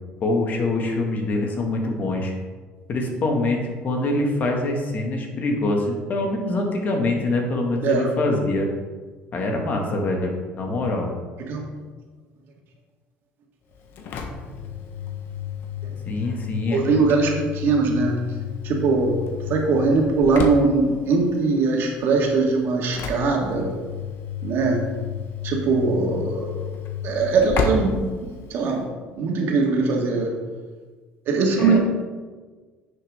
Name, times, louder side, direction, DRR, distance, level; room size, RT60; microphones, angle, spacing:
voice 1, 0.2-2.3 2.9-8.7 9.3-11.1 16.1-17.0 31.6-31.8, left 2 dB, 45° left, 1 dB, 2.0 m, -24 dB
Engine / Slam, 13.7-28.9, left 6 dB, 65° left, 1.2 m, -32 dB
voice 2, 16.6-18.2 18.6-19.1 19.5-23.8 24.4-24.9 25.4-26.6 27.0-28.9 29.2-30.3 31.3-31.8, right 4 dB, 65° right, 1 dB, 2.0 m, -21 dB
10.0 x 6.9 x 3.7 m, 1.4 s
cardioid pair, 105°, 4 cm